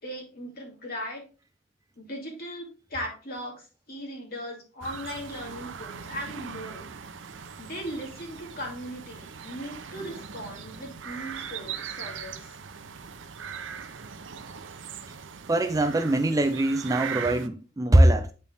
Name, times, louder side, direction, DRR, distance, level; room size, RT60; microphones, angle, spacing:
voice 1, 0.0-1.2 2.0-6.9 7.6-12.6, equal, 50° left, 2.4 m, -38 dB
sound 1, 4.8-17.5, right 7 dB, 75° right, 0.6 m, -40 dB
voice 2, 15.5-18.3, right 1 dB, 15° right, 0.4 m, -22 dB
8.3 x 4.3 x 3.4 m
head